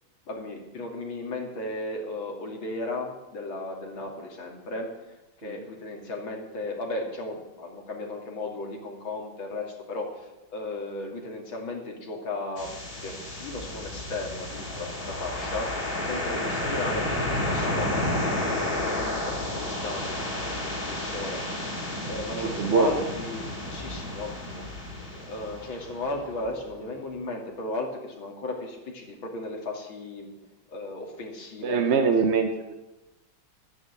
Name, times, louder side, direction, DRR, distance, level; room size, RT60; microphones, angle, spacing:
voice 1, 0.3-12.7 13.0-15.7 16.1-18.0 18.7-24.7 25.3-30.3 30.7-31.9, left 2 dB, 80° left, 1 dB, 3.2 m, -35 dB
sound 1, 12.6-26.4, left 1 dB, 45° left, 4.2 m, -31 dB
voice 2, 22.3-22.9 31.6-32.7, right 5 dB, 50° right, 7 dB, 0.9 m, -23 dB
12.0 x 10.5 x 8.2 m, 1.0 s
omnidirectional pair, 2.2 m